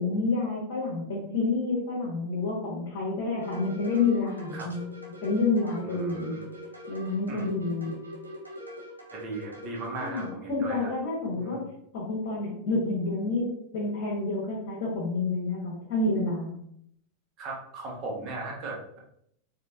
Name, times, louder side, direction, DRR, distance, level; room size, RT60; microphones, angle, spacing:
voice 1, 0.0-4.8 5.2-6.4 6.9-8.0 10.0-11.6 11.9-13.5 13.7-16.6, left 3 dB, 50° left, -4 dB, 1.1 m, -29 dB
sound 1, 3.4-10.3, left 1 dB, 85° right, 0.8 m, -43 dB
voice 2, 5.8-6.5 7.3-7.5 9.1-10.9 11.3-11.7 17.4-19.0, right 2 dB, 35° right, -2 dB, 1.2 m, -37 dB
4.4 x 2.7 x 2.7 m, 0.71 s
figure-of-eight pair, 90°, 0 cm